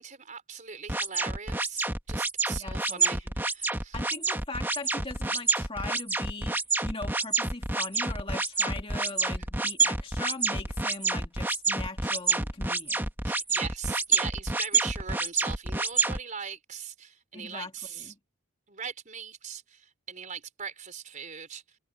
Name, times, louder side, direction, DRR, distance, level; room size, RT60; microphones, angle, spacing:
voice 1, 0.0-4.0 13.2-18.1 18.7-21.8, right 6 dB, 35° right, 4.7 m, -40 dB
sound 1, 0.9-16.2, right 4 dB, 10° right, 1.3 m, -28 dB
voice 2, 2.5-3.2 3.9-6.6 6.8-13.1 17.3-18.2, left 3 dB, 25° left, 2.1 m, -40 dB
head